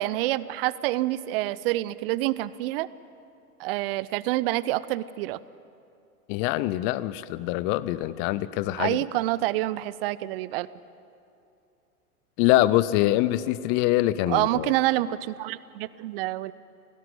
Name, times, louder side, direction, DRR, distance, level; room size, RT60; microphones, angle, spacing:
voice 1, 0.0-2.9 3.6-5.4 8.8-10.7 14.3-16.5, right 16 dB, 40° right, 18 dB, 0.6 m, -27 dB
voice 2, 6.3-9.0 12.4-14.7, left 15 dB, 25° left, 17 dB, 0.5 m, -24 dB
18.0 x 17.5 x 9.9 m, 2.6 s
figure-of-eight pair, 105°, 46 cm